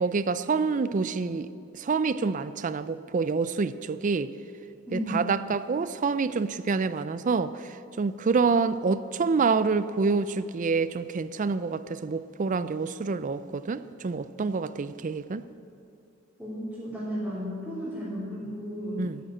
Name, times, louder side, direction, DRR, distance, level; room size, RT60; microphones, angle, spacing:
voice 1, 0.0-4.3 4.9-15.4 19.0-19.2, right 4 dB, 35° right, 14 dB, 0.4 m, -27 dB
voice 2, 4.9-5.3 16.4-19.1, equal, 5° right, -14 dB, 3.3 m, -34 dB
12.0 x 9.3 x 7.5 m, 2.7 s
head